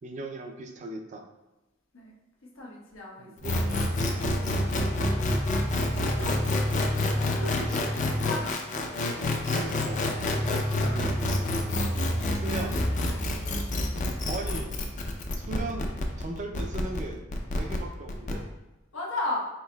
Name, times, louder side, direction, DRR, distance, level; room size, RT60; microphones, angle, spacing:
voice 1, 0.0-1.3 3.2-3.7 7.4-7.9 8.8-8.9 9.5-10.0 12.3-12.8 14.3-14.7 15.4-17.2 17.5-18.5, right 2 dB, 35° right, 4 dB, 0.4 m, -37 dB
voice 2, 2.5-4.0 5.6-7.5 8.0-8.6 10.5-11.1 13.0-13.2 18.9-19.4, left 2 dB, 80° left, -3 dB, 1.1 m, -37 dB
sound 1, 3.4-18.3, left 1 dB, 40° left, 0.5 m, -27 dB
4.4 x 4.0 x 2.2 m, 1.0 s
head